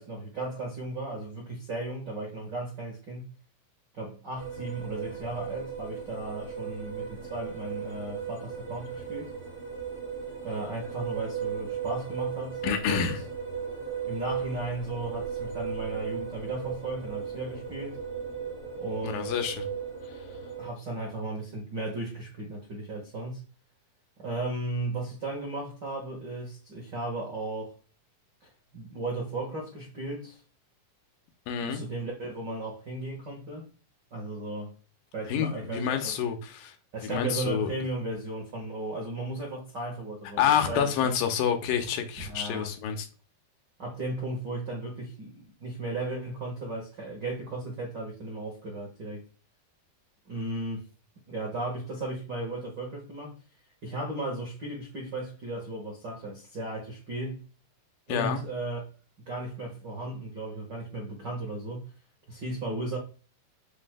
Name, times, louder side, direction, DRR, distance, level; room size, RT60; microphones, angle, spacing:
voice 1, 0.0-3.3 3.9-9.3 10.4-13.1 14.0-18.0 18.8-19.5 20.6-23.4 24.2-27.7 28.4-30.4 31.6-33.7 34.1-34.7 35.1-36.1 36.9-41.1 42.2-42.7 43.8-49.2 50.3-50.8 51.3-53.4 53.8-57.5 58.1-58.8 59.3-61.9 62.3-63.0, right 2 dB, 85° right, 0.9 m, -35 dB
sound 1, 4.3-20.7, right 6 dB, 30° left, 0.5 m, -36 dB
voice 2, 12.6-13.2 19.0-19.7 31.5-31.8 35.3-36.8 37.0-37.7 40.4-43.1 58.1-58.4, left 8 dB, 75° left, 2.4 m, -28 dB
7.5 x 5.8 x 2.2 m
omnidirectional pair, 4.5 m